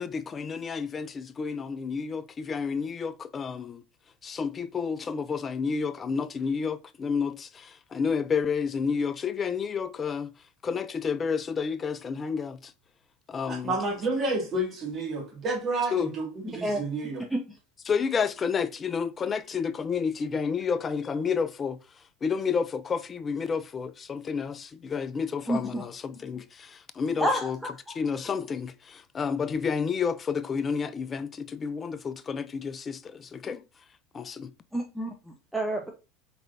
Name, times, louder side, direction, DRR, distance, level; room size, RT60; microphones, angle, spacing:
voice 1, 0.0-3.8 4.2-10.3 10.6-12.6 13.3-13.7 15.9-16.2 17.9-21.8 22.2-27.6 28.0-33.6 34.1-34.5, left 6 dB, 30° left, 0.5 m, -30 dB
voice 2, 13.5-17.2, right 2 dB, 35° right, 2.2 m, -30 dB
voice 3, 25.5-25.8 27.2-27.9 34.7-35.9, right 1 dB, 5° right, 0.8 m, -29 dB
4.5 x 4.0 x 2.6 m
supercardioid pair, 100°, 0 cm